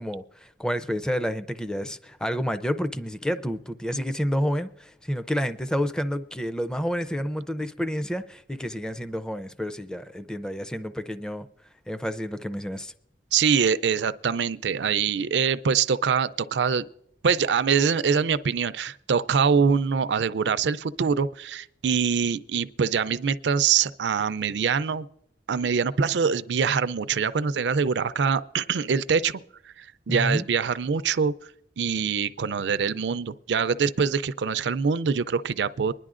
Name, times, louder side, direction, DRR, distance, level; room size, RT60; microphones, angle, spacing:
voice 1, 0.0-11.5 11.9-12.9 30.1-30.5, equal, 5° left, 0.4 m, -29 dB
voice 2, 13.3-16.9 17.2-25.1 25.5-29.3 29.8-31.3 31.8-35.9, right 6 dB, 75° right, 0.4 m, -24 dB
23.5 x 10.5 x 2.5 m
head